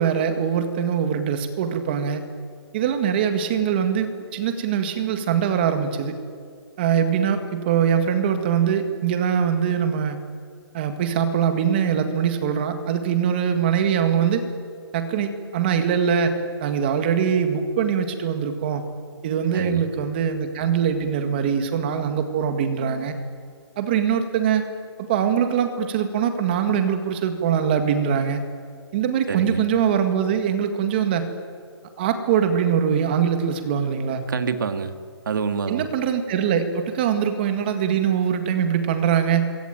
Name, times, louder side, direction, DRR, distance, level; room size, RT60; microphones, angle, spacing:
voice 1, 0.0-2.2 2.7-6.1 6.8-10.2 10.7-14.4 14.9-18.8 19.2-23.1 23.8-24.6 25.0-28.4 28.9-31.3 32.0-34.2 35.7-39.4, right 8 dB, 25° right, 8 dB, 1.9 m, -22 dB
voice 2, 19.5-19.9 29.3-29.7 34.3-34.9 35.3-35.9, right 6 dB, 50° right, 9 dB, 1.9 m, -27 dB
26.5 x 22.5 x 9.1 m, 2.1 s
hypercardioid pair, 175°, 14 cm